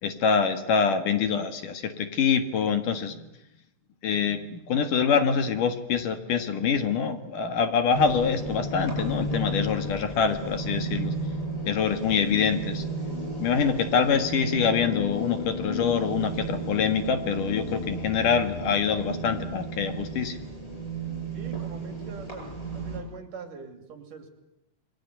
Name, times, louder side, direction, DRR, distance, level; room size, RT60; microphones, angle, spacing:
voice 1, 0.0-3.2 4.0-11.1 11.6-12.8 13.4-20.4, left 6 dB, 60° left, 8 dB, 3.0 m, -25 dB
sound 1, 7.9-23.0, right 1 dB, 10° left, 7.7 m, -33 dB
voice 2, 21.3-24.3, right 5 dB, 60° right, 6 dB, 4.3 m, -43 dB
28.0 x 23.0 x 8.2 m, 0.83 s
omnidirectional pair, 4.4 m